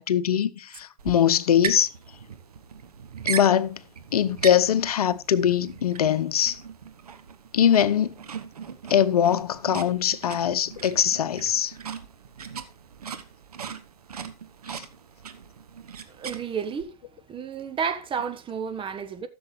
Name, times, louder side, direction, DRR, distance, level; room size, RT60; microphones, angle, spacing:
voice 1, 0.0-1.9 3.3-3.8 4.1-6.6 7.5-8.1 8.9-11.7 14.7-14.8, left 9 dB, 75° left, 0.8 m, -22 dB
sound 1, 1.0-16.8, right 7 dB, 80° right, 1.1 m, -39 dB
voice 2, 16.1-16.9 17.3-19.3, right 6 dB, 25° right, 1.1 m, -31 dB
14.0 x 7.0 x 3.2 m
figure-of-eight pair, 85°, 19 cm